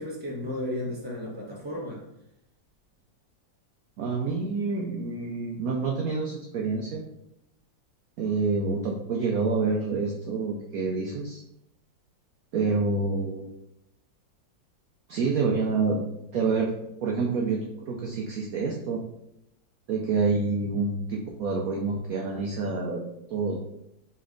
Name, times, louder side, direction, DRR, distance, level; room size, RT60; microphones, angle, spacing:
voice 1, 0.0-2.0, left 1 dB, 5° right, -5 dB, 1.0 m, -34 dB
voice 2, 4.0-7.0 8.2-11.4 12.5-13.5 15.1-16.1 16.3-19.0 19.9-23.0 23.3-23.6, right 4 dB, 65° right, -1 dB, 0.9 m, -27 dB
4.1 x 3.3 x 3.7 m, 0.82 s
omnidirectional pair, 2.0 m